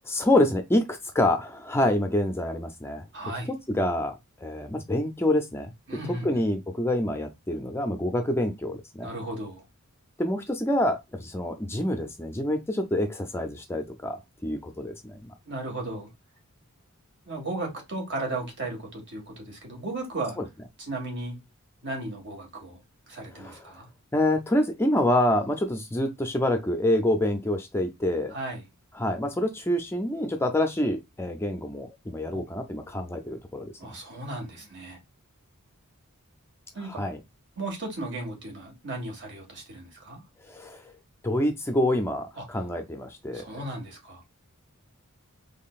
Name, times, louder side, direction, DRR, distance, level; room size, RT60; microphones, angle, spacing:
voice 1, 0.1-5.7 6.2-9.1 10.2-15.3 20.4-20.5 23.3-23.6 24.1-28.3 28.9-33.7 36.8-37.2 40.5-40.9 41.2-43.6, left 1 dB, 10° left, 0.4 m, -27 dB
voice 2, 3.1-3.5 5.9-6.4 9.0-9.6 15.4-16.1 17.3-20.4 20.8-21.4 21.8-22.8 23.1-23.9 28.3-28.6 32.3-32.4 33.8-35.0 36.7-37.0 37.6-40.2 42.4-42.5 43.3-44.2, right 2 dB, 55° right, 1.7 m, -35 dB
3.7 x 3.4 x 2.4 m
head